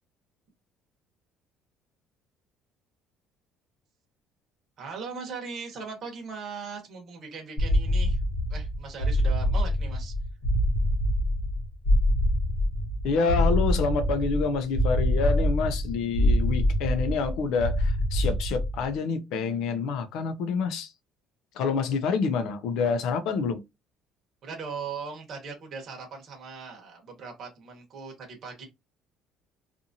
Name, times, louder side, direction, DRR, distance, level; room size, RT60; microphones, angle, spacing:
voice 1, 4.8-8.2 8.5-10.1 24.4-28.6, right 5 dB, 40° right, 1.0 m, -39 dB
sound 1, 7.6-18.9, left 1 dB, 50° left, 1.0 m, -25 dB
voice 2, 13.0-20.9 21.5-23.6, left 4 dB, 70° left, 0.5 m, -27 dB
2.8 x 2.5 x 2.6 m
cardioid pair, 140°, 0 cm